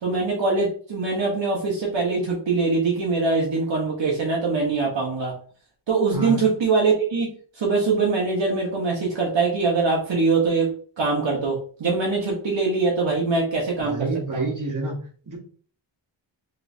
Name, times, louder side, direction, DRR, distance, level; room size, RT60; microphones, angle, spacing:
voice 1, 0.0-5.4 5.9-7.3 7.6-14.5, right 4 dB, 65° right, -3 dB, 0.9 m, -23 dB
voice 2, 13.8-14.9 15.3-15.4, right 2 dB, 40° right, -2 dB, 1.3 m, -28 dB
3.1 x 3.0 x 2.6 m, 0.43 s
wide cardioid pair, 115°, 48 cm